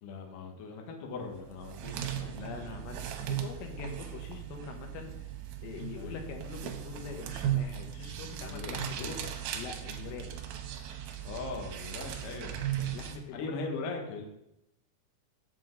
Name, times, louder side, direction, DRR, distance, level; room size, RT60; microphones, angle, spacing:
voice 1, 0.0-2.5 5.9-6.3 8.4-9.3 11.2-12.6 13.3-14.3, left 3 dB, 70° left, 1 dB, 2.1 m, -40 dB
sound 1, 1.4-13.2, right 10 dB, 75° right, 2.9 m, -37 dB
voice 2, 2.3-5.1 5.6-10.6 12.9-13.6, left 7 dB, 90° left, 3 dB, 3.6 m, -43 dB
7.8 x 7.6 x 3.8 m, 0.86 s
omnidirectional pair, 5.4 m